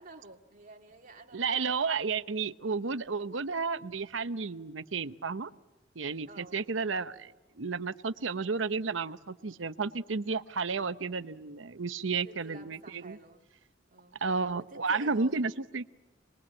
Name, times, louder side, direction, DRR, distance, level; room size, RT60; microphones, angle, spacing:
voice 1, 0.0-1.7 6.3-6.6 12.0-13.5 13.9-14.2 14.5-15.5, right 2 dB, 45° right, 3 dB, 2.2 m, -51 dB
voice 2, 1.3-5.5 6.0-7.3 7.6-13.2 14.2-15.8, right 4 dB, 75° right, 13 dB, 0.9 m, -32 dB
27.0 x 21.0 x 8.7 m, 1.1 s
head